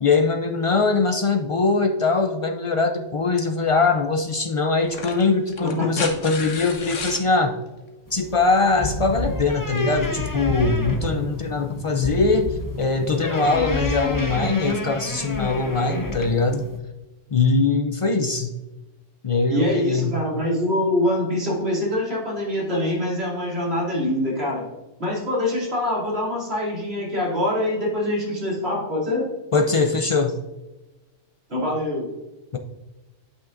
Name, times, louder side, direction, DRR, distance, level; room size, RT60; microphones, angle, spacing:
voice 1, 0.0-7.5 8.1-16.7 17.3-18.5 19.2-20.1 29.5-30.4 32.5-32.6, left 3 dB, 60° left, 6 dB, 0.3 m, -22 dB
sound 1, 3.7-3.8 4.8-7.3 8.8-8.9, left 4 dB, 85° left, 1.3 m, -32 dB
voice 2, 5.6-6.0 19.5-24.7 25.0-29.3 31.5-32.1, left 1 dB, 55° right, -5 dB, 2.9 m, -24 dB
sound 2, 8.1-16.8, left 2 dB, 20° left, 0.7 m, -32 dB
sound 3, 8.8-14.4, left 2 dB, 40° left, 1.1 m, -31 dB
10.5 x 5.9 x 2.5 m, 1.1 s
omnidirectional pair, 1.3 m